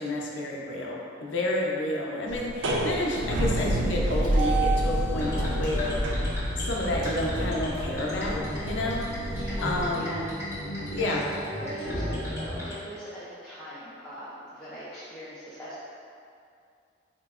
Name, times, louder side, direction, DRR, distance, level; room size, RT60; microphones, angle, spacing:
voice 1, 0.0-10.2 10.9-11.3, left 1 dB, 80° left, -2 dB, 0.4 m, -30 dB
sound 1, 2.3-9.9, right 1 dB, 80° right, 0.4 m, -28 dB
sound 2, 5.1-12.7, equal, 15° right, 0.9 m, -34 dB
voice 2, 9.3-10.2 11.1-11.2 11.6-15.8, equal, 5° left, -13 dB, 0.4 m, -41 dB
4.3 x 2.0 x 2.3 m, 2.4 s
head